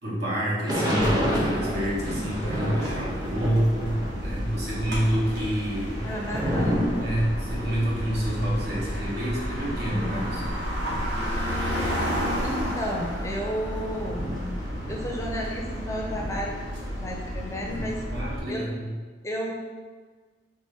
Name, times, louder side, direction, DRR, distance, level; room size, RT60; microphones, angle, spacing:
voice 1, 0.0-6.0 7.0-10.4 17.7-17.8 18.1-18.9, right 1 dB, 60° right, -6 dB, 1.3 m, -28 dB
Thunder / Rain, 0.7-4.3 4.6-11.7 12.3-12.4 12.5-15.7 16.1-17.8, equal, 25° right, 0.7 m, -32 dB
sound 1, 0.9-18.4, equal, 80° right, 1.1 m, -32 dB
voice 2, 6.0-7.0 12.4-14.3 14.9-16.7 16.9-18.0 18.5-18.7 19.2-19.5, equal, 15° left, -1 dB, 0.5 m, -32 dB
4.4 x 3.4 x 3.4 m, 1.4 s
head